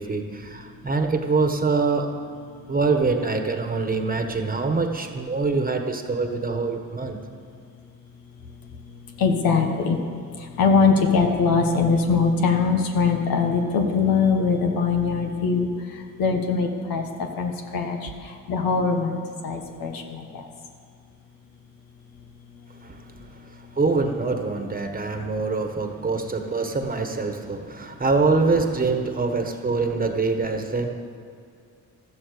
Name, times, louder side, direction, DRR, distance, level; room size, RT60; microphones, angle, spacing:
voice 1, 0.0-2.1 2.7-7.2 22.8-23.0 23.8-30.9, right 3 dB, 25° right, 5 dB, 1.3 m, -24 dB
voice 2, 9.2-10.0 10.6-15.7 16.2-17.0 17.4-18.0 18.5-20.2, left 5 dB, 85° left, 4 dB, 1.5 m, -21 dB
14.0 x 12.0 x 6.7 m, 2.4 s
cardioid pair, 90°, 34 cm